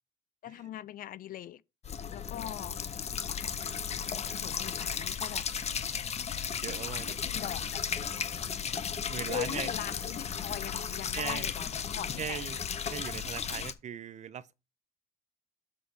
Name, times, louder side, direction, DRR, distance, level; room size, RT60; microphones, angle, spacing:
voice 1, 0.4-1.6 2.1-2.8 4.3-5.5 7.0-7.8 9.3-12.4, left 11 dB, 55° left, 0.6 m, -41 dB
sound 1, 1.8-13.7, left 7 dB, 40° left, 1.1 m, -35 dB
voice 2, 6.6-7.2 9.1-9.7 11.1-11.5 12.2-12.6 12.9-14.5, right 9 dB, 45° right, 0.8 m, -39 dB
7.6 x 6.4 x 4.6 m
cardioid pair, 110°, 17 cm